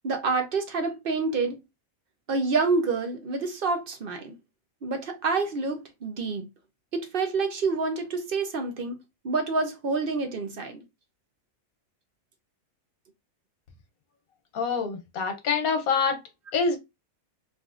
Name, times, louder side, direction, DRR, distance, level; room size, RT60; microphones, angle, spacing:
voice 1, 0.0-1.6 2.3-4.3 4.8-6.4 6.9-10.8, right 4 dB, 55° right, 0.7 m, -28 dB
voice 2, 14.5-16.2 16.5-16.8, left 5 dB, 90° left, 1.3 m, -25 dB
3.3 x 2.6 x 2.4 m
omnidirectional pair, 1.4 m